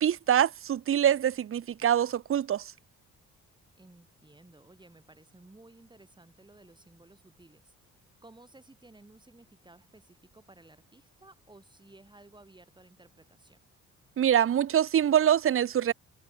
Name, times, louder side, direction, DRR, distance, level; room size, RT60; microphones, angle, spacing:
voice 1, 0.0-2.7 14.2-15.9, right 10 dB, 45° right, 0.9 m, -24 dB
voice 2, 3.7-7.7 8.2-13.6, right 2 dB, 15° right, 7.9 m, -56 dB
cardioid pair, 90°, 30 cm